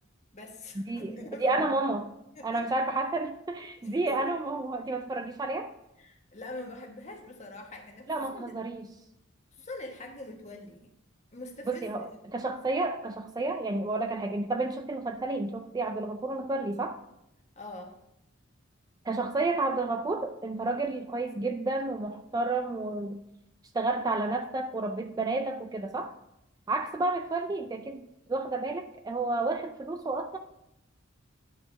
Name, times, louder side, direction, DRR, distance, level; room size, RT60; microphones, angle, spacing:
voice 1, 0.3-1.7 2.3-2.7 3.8-4.3 6.0-8.8 9.5-10.9 11.3-12.4 17.5-17.9, left 2 dB, 35° left, 2 dB, 1.2 m, -44 dB
voice 2, 0.9-2.1 2.4-5.7 8.1-8.9 11.7-17.0 19.0-23.2 23.7-26.1 26.7-30.4, right 2 dB, 20° right, 7 dB, 0.3 m, -31 dB
10.0 x 3.8 x 5.9 m, 0.83 s
head